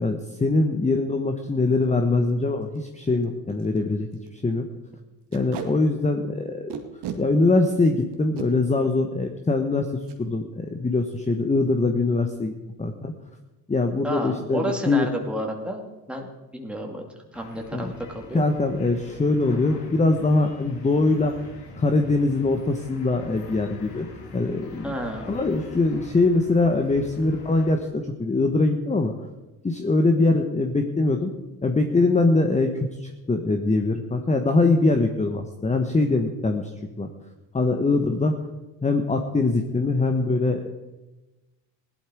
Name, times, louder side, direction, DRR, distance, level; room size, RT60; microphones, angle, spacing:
voice 1, 0.0-4.7 5.3-6.8 7.2-9.9 10.2-12.5 12.8-13.1 13.7-15.1 17.7-17.9 18.3-21.3 21.8-24.1 24.3-24.9 25.3-29.1 29.6-31.3 31.6-36.7 37.0-37.1 37.5-38.3 38.8-40.7, left 3 dB, 15° left, 5 dB, 1.2 m, -22 dB
Packing tape duct tape, 1.7-1.8 2.3-2.4 2.6-2.8 3.2-3.3 3.6-3.8 4.1-4.3 5.3-5.7 6.7-7.2 8.1-8.5 10.0-10.2 10.6-10.7 11.0-11.4, right 9 dB, 55° right, 2.2 m, -35 dB
voice 2, 14.0-16.3 16.5-18.4 24.8-25.4, right 1 dB, ahead, 1 dB, 2.4 m, -31 dB
New York City Filmset, 17.3-27.8, left 2 dB, 80° left, 3.3 m, -43 dB
16.5 x 11.5 x 4.7 m, 1.1 s
hypercardioid pair, 70°, 49 cm